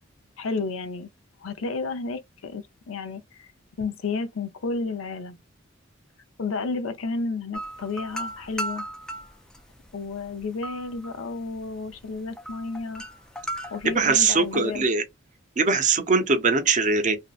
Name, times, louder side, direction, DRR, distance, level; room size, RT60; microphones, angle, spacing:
voice 1, 0.4-1.1 1.4-3.5 3.8-5.4 6.4-8.9 9.9-13.0 13.7-14.9, left 4 dB, 80° left, 0.5 m, -32 dB
sound 1, 7.5-14.8, right 1 dB, 5° left, 0.4 m, -37 dB
voice 2, 13.8-15.0 15.6-17.2, right 4 dB, 40° right, 0.6 m, -21 dB
2.6 x 2.1 x 2.3 m
head